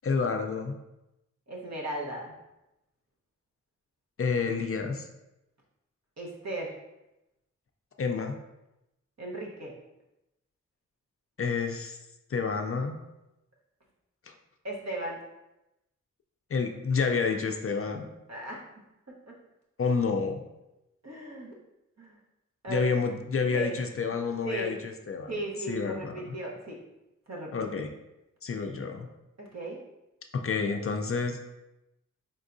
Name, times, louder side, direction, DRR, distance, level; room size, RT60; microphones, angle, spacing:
voice 1, 0.0-0.8 4.2-5.1 8.0-8.4 11.4-12.0 12.3-13.0 14.3-14.4 16.5-18.1 19.8-20.4 22.7-25.4 25.7-26.3 27.5-27.9 28.4-29.1 30.3-31.4, left 5 dB, 45° left, 4 dB, 0.4 m, -29 dB
voice 2, 1.5-2.3 6.2-6.7 9.2-9.7 14.6-15.2 18.3-18.7 19.1-19.4 21.0-21.5 22.0-22.2 22.6-22.9 23.5-23.7 24.4-24.8 25.3-26.8 27.3-27.5 29.4-29.8, right 2 dB, 60° right, -3 dB, 1.2 m, -36 dB
4.5 x 3.6 x 2.6 m, 0.93 s
wide cardioid pair, 85°, 30 cm